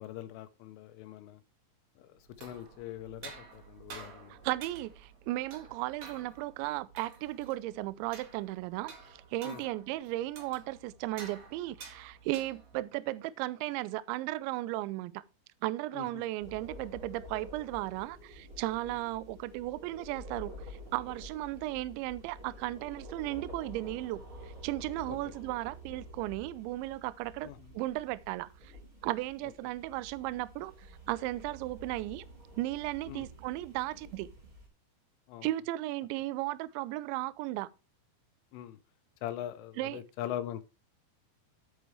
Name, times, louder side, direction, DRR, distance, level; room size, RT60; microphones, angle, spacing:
voice 1, 0.0-1.4 2.0-4.5 9.4-9.6 15.9-16.1 18.9-19.0 25.1-25.2 27.4-27.7 33.1-33.3 35.3-35.5 38.5-38.8 39.2-40.6, left 12 dB, 80° left, 3.2 m, -42 dB
sound 1, 2.2-12.9, right 5 dB, 55° right, 2.0 m, -51 dB
voice 2, 4.3-8.9 9.3-15.2 15.6-28.7 29.0-32.3 32.6-34.3 35.4-37.7 39.8-40.0, right 17 dB, 85° right, 2.7 m, -35 dB
sound 2, 16.4-34.7, equal, 30° right, 3.7 m, -49 dB
10.0 x 8.4 x 3.3 m
omnidirectional pair, 5.9 m